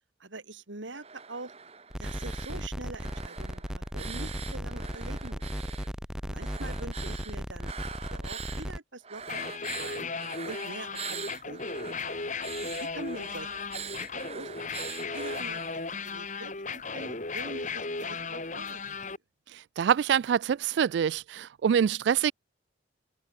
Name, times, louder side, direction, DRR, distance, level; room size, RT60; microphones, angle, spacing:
voice 1, 0.2-1.5 2.0-5.5 6.3-10.1 10.5-11.6 12.8-13.5 13.8-14.5 15.1-18.8, right 2 dB, 90° right, 3.0 m, -44 dB
sound 1, 0.9-2.7 2.9-5.9 6.3-8.7 9.0-15.9, right 7 dB, 35° right, 2.3 m, -43 dB
sound 2, 1.9-8.8, equal, 5° right, 2.2 m, -36 dB
sound 3, 9.2-19.2, left 4 dB, 40° left, 2.8 m, -36 dB
voice 2, 19.8-22.3, right 8 dB, 65° right, 0.3 m, -25 dB
head